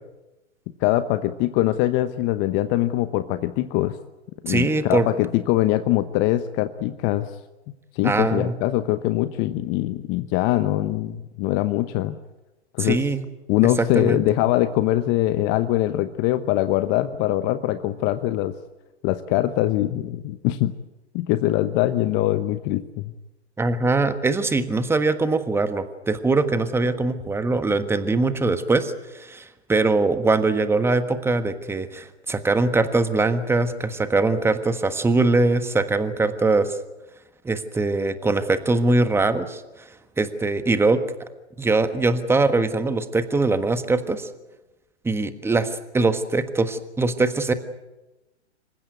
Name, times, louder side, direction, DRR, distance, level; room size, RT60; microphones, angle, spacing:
voice 1, 0.8-4.0 4.4-7.3 7.9-12.1 12.7-13.0 13.5-18.5 19.0-20.7 21.1-23.1, left 15 dB, 30° left, 11 dB, 1.0 m, -22 dB
voice 2, 4.5-5.1 8.0-8.5 12.8-13.3 13.8-14.2 23.6-36.8 37.4-39.6 40.2-41.0 41.6-44.3 45.0-47.5, right 3 dB, 5° right, 10 dB, 1.4 m, -22 dB
26.5 x 15.5 x 9.4 m, 1.1 s
hypercardioid pair, 120°, 34 cm